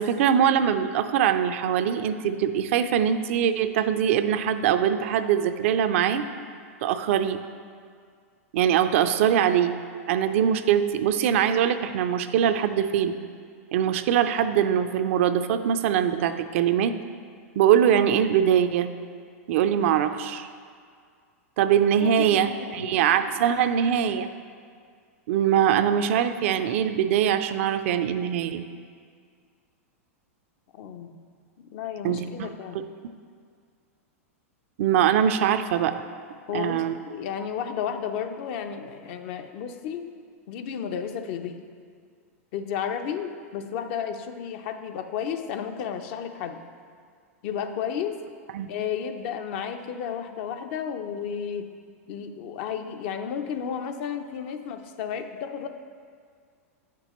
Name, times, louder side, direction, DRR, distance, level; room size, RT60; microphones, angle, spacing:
voice 1, 0.0-6.2 6.8-7.4 8.5-9.7 10.1-13.1 13.7-16.9 17.6-18.9 19.5-20.5 21.6-24.3 25.3-28.7 32.0-32.5 34.8-35.9 36.5-36.9 48.5-48.7, right 9 dB, 60° right, 9 dB, 0.4 m, -22 dB
voice 2, 22.0-23.0 30.7-31.2 31.7-32.8 36.5-40.1 40.5-41.6 42.5-46.6 47.4-48.2 48.7-51.7 52.1-55.7, left 8 dB, 55° left, 7 dB, 0.5 m, -32 dB
8.9 x 5.9 x 3.0 m, 2.1 s
hypercardioid pair, 110°, 8 cm